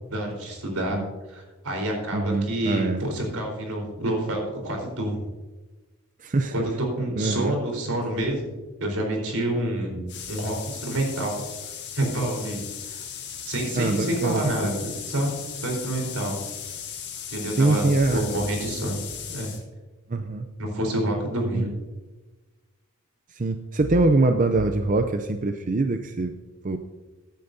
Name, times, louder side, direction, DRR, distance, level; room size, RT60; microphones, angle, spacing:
voice 1, 0.1-1.0 1.3-5.2 6.5-8.5 8.8-10.0 10.3-11.3 11.9-13.0 13.5-14.7 15.1-15.3 15.6-16.4 17.3-17.9 18.1-19.0 19.3-19.5 20.6-21.7, right 1 dB, 80° right, 1 dB, 4.1 m, -28 dB
voice 2, 2.1-3.1 6.2-6.7 7.2-7.5 13.7-14.7 17.5-18.3 20.1-20.5 21.5-21.8 23.3-26.4 26.6-26.8, right 2 dB, 35° right, 7 dB, 0.5 m, -24 dB
sound 1, 10.1-19.6, left 8 dB, 50° left, 1.8 m, -37 dB
16.0 x 10.0 x 2.7 m, 1.2 s
head